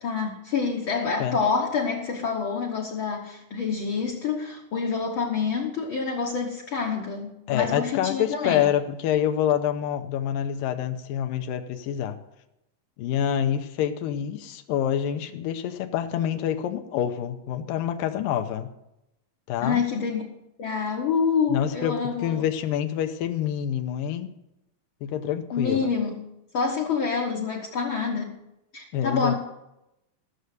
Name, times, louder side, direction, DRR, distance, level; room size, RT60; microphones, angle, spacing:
voice 1, 0.0-8.7 19.6-20.3 20.6-22.4 25.5-26.2 26.5-28.4 28.7-29.3, left 5 dB, 65° left, 0 dB, 1.3 m, -27 dB
voice 2, 7.5-12.2 13.0-18.7 19.5-19.8 21.5-24.3 25.0-25.9 28.9-29.3, left 10 dB, 85° left, 7 dB, 2.5 m, -27 dB
14.5 x 6.8 x 6.5 m, 0.89 s
omnidirectional pair, 3.9 m